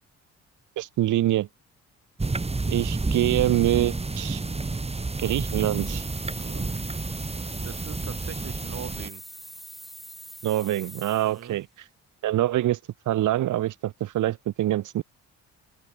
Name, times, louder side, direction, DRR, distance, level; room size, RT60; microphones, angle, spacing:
voice 1, 0.8-1.5 2.7-4.4 5.2-6.1 10.4-11.9 12.2-12.8 13.1-15.0, right 14 dB, 80° right, 2.6 m, -25 dB
sound 1, 2.2-9.1, right 3 dB, 20° right, 4.2 m, -30 dB
sound 2, 5.1-11.5, equal, ahead, 4.6 m, -44 dB
voice 2, 6.3-6.7 7.4-9.2 11.2-11.6, right 8 dB, 55° right, 5.2 m, -41 dB
open air
cardioid pair, 90°, 30 cm